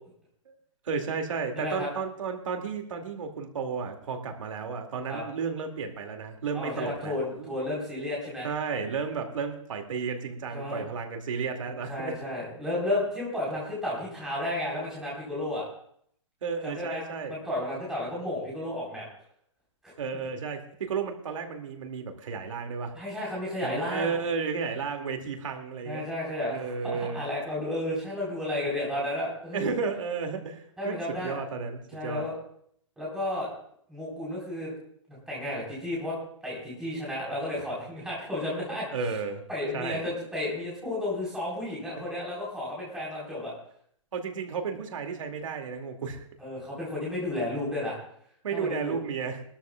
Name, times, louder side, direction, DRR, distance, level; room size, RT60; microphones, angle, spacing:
voice 1, 0.8-7.5 8.4-12.2 16.4-17.4 20.0-22.9 23.6-26.1 26.5-27.2 29.5-32.2 38.9-39.4 39.7-40.0 44.1-46.3 48.4-49.4, right 5 dB, 80° right, 3 dB, 2.3 m, -33 dB
voice 2, 1.5-1.9 5.1-5.2 6.5-8.5 10.5-10.8 11.6-15.7 16.6-19.0 19.8-20.3 22.9-24.1 25.8-29.7 30.8-31.4 31.9-32.3 33.0-33.5 33.9-34.7 35.1-36.1 36.4-38.9 39.5-43.5 46.4-48.0 48.5-49.0, left 1 dB, 5° right, -6 dB, 4.2 m, -32 dB
22.0 x 13.0 x 2.3 m, 0.67 s
hypercardioid pair, 180°, 16 cm